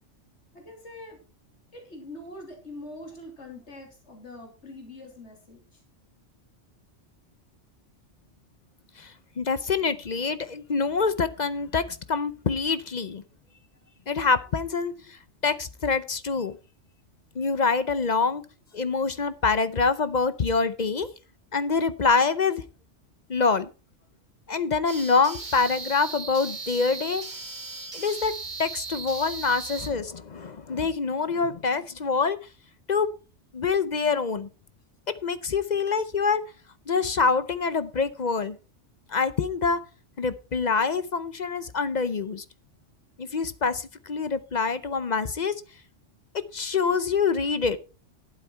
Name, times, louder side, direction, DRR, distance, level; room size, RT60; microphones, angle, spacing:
voice 1, 0.5-1.2 1.7-5.8, left 1 dB, 70° left, 2 dB, 3.4 m, -43 dB
voice 2, 9.0-13.2 14.1-16.6 17.4-18.4 18.7-21.1 21.5-22.6 23.3-23.7 24.5-27.2 27.9-28.3 28.6-32.4 32.9-33.1 33.5-34.5 35.2-36.4 36.9-38.6 39.1-39.8 40.2-42.4 43.2-45.5 46.5-47.8, left 4 dB, 45° left, 13 dB, 0.7 m, -25 dB
sound 1, 24.9-29.9, right 4 dB, 40° right, 2.1 m, -37 dB
11.5 x 9.1 x 4.4 m, 0.34 s
omnidirectional pair, 1.2 m